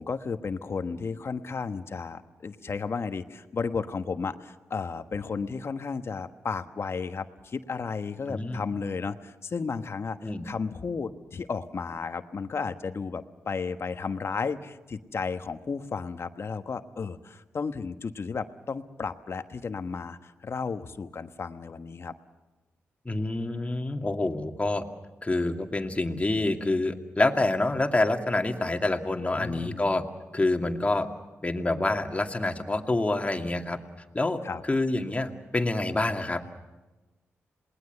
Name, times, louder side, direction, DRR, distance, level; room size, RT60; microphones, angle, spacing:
voice 1, 0.0-10.2 10.4-22.1 29.4-29.8 34.4-34.6, left 5 dB, 55° left, 9 dB, 1.3 m, -33 dB
voice 2, 8.3-8.6 10.2-10.5 23.0-24.8 25.2-30.0 30.3-31.1 31.4-33.8 34.1-36.6, left 2 dB, 25° left, 4 dB, 2.4 m, -27 dB
27.5 x 20.0 x 6.8 m, 1.1 s
supercardioid pair, 50°, 5 cm